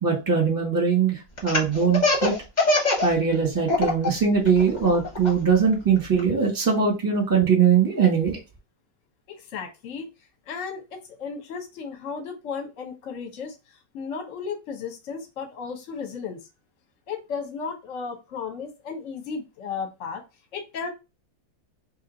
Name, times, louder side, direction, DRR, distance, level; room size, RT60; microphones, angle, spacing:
voice 1, 0.0-2.3 3.0-8.4, right 6 dB, 15° right, 0.9 m, -21 dB
Laughter, 1.4-3.1 3.4-4.1 4.5-6.2, left 2 dB, 30° left, 0.9 m, -22 dB
voice 2, 9.3-10.1 10.5-13.5 13.9-16.4 17.1-20.2 20.5-20.9, left 5 dB, 50° left, 1.1 m, -34 dB
3.1 x 2.8 x 3.9 m
omnidirectional pair, 2.1 m